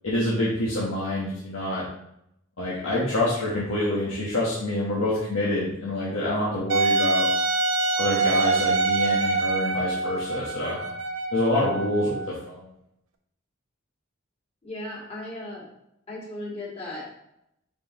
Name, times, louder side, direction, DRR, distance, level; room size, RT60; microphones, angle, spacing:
voice 1, 0.0-1.8 2.6-7.3 8.0-10.8 11.3-12.7, left 1 dB, 90° left, -7 dB, 1.4 m, -26 dB
Wind instrument woodwind instrument, 6.7-12.3, right 3 dB, 70° right, 0.7 m, -25 dB
voice 2, 14.6-15.6 16.1-17.1, left 1 dB, 30° left, -5 dB, 2.2 m, -36 dB
6.6 x 4.6 x 3.2 m, 0.78 s
head